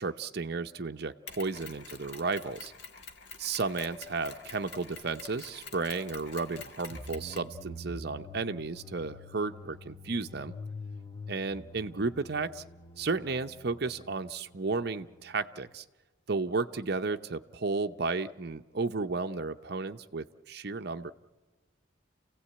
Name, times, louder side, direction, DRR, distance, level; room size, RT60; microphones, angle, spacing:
voice 1, 0.0-2.7 3.4-10.5 11.3-12.6 13.0-15.8 16.3-21.1, right 4 dB, 55° right, 8 dB, 0.7 m, -33 dB
Mechanisms, 1.3-7.6, left 5 dB, 55° left, 1.7 m, -47 dB
sound 1, 6.9-15.7, left 2 dB, 20° left, 0.8 m, -46 dB
28.5 x 16.5 x 8.6 m, 1.3 s
head